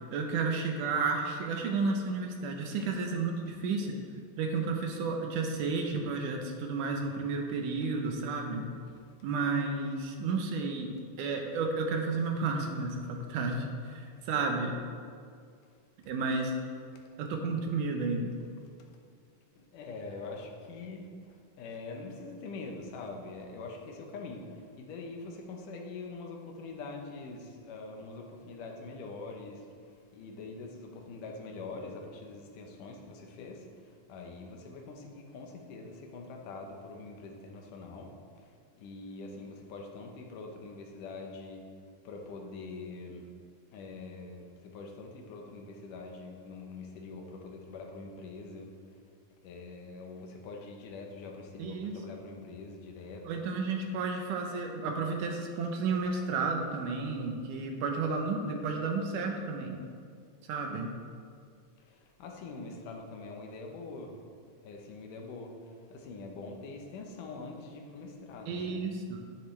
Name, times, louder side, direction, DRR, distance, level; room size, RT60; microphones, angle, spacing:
voice 1, 0.1-4.0 4.4-8.7 9.2-14.7 16.1-16.5 17.2-18.4 51.6-51.9 53.2-59.8 60.5-60.9 68.5-69.2, right 4 dB, 75° right, 2 dB, 2.3 m, -32 dB
voice 2, 19.6-41.7 42.0-43.3 43.7-49.0 49.4-53.5 61.8-64.2 64.6-68.8, left 3 dB, 75° left, 2 dB, 2.5 m, -44 dB
10.0 x 10.0 x 3.4 m, 2.2 s
omnidirectional pair, 3.9 m